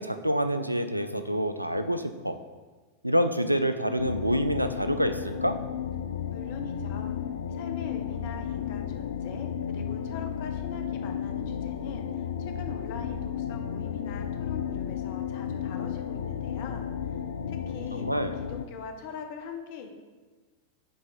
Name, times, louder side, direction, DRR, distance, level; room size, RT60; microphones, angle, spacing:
voice 1, 0.0-2.4 3.0-5.5 17.9-18.4, equal, 90° right, 9 dB, 0.3 m, -27 dB
sound 1, 4.0-18.7, left 8 dB, 65° left, 0.3 m, -33 dB
voice 2, 6.3-7.1 7.5-16.9 17.5-18.1 18.4-19.9, left 5 dB, 50° left, 5 dB, 0.7 m, -42 dB
7.5 x 3.1 x 4.0 m, 1.3 s
figure-of-eight pair, 90°, 0 cm